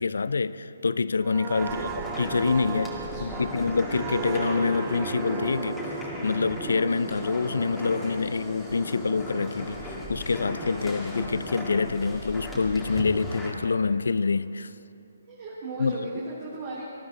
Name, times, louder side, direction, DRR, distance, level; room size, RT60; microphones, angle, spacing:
voice 1, 0.0-1.9 2.2-2.9 3.2-5.8 6.2-14.7 15.8-16.0, left 4 dB, 80° left, 16 dB, 0.5 m, -26 dB
sound 1, 1.2-8.7 9.1-9.3, right 7 dB, 25° right, 0.6 m, -37 dB
sound 2, 1.5-13.5, equal, ahead, 2.1 m, -36 dB
voice 2, 1.5-2.0 2.9-3.5 15.3-16.9, right 2 dB, 45° right, -6 dB, 2.7 m, -37 dB
19.0 x 13.5 x 4.1 m, 2.8 s
hypercardioid pair, 145°, 0 cm